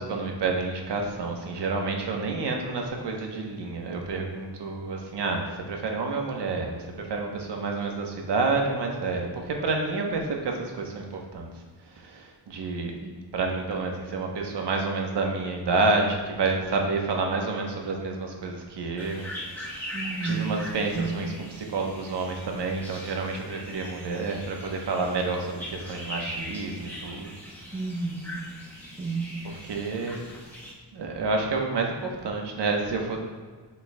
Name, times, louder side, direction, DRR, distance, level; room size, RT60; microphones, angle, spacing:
voice 1, 0.0-11.5 11.9-13.0 13.3-19.3 20.2-21.3 21.6-27.3 29.7-30.2 30.9-33.2, right 3 dB, 75° right, 2 dB, 1.0 m, -29 dB
sound 1, 19.0-30.7, equal, 5° left, 1.1 m, -41 dB
voice 2, 19.9-20.6 20.9-21.2 27.7-28.5 29.0-29.4, right 3 dB, 20° right, 0 dB, 0.5 m, -31 dB
7.6 x 5.8 x 2.2 m, 1.5 s
wide cardioid pair, 180°, 42 cm